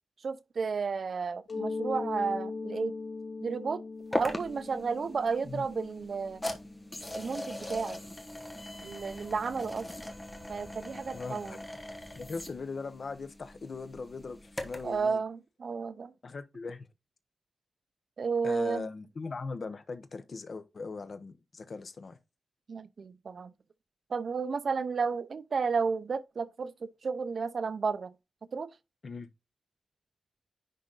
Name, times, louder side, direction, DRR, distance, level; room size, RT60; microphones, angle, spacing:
voice 1, 0.2-2.9 3.4-3.8 4.1-6.4 7.1-8.0 8.8-9.9 10.5-11.6 14.8-16.1 18.2-18.8 22.7-23.5 24.1-26.7 27.0-28.1 28.5-28.7, right 5 dB, 60° right, 0.7 m, -32 dB
Mallet percussion, 1.5-7.0, left 3 dB, 75° left, 2.0 m, -39 dB
sound 1, 4.1-15.0, left 1 dB, 15° left, 1.3 m, -40 dB
voice 2, 11.1-11.6 12.1-15.2 16.2-16.9 18.4-22.2 29.0-29.3, left 4 dB, 55° left, 1.0 m, -40 dB
10.0 x 4.0 x 4.0 m
wide cardioid pair, 155°, 0 cm